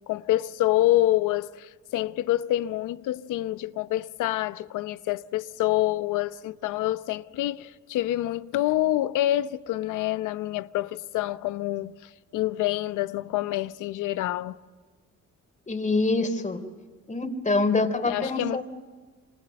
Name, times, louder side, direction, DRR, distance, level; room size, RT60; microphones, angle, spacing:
voice 1, 0.1-14.6 18.0-18.6, left 15 dB, 90° left, 0.8 m, -27 dB
voice 2, 15.7-16.6 17.1-18.6, left 3 dB, 25° left, 3.5 m, -25 dB
27.5 x 27.0 x 6.5 m
cardioid pair, 90°, 30 cm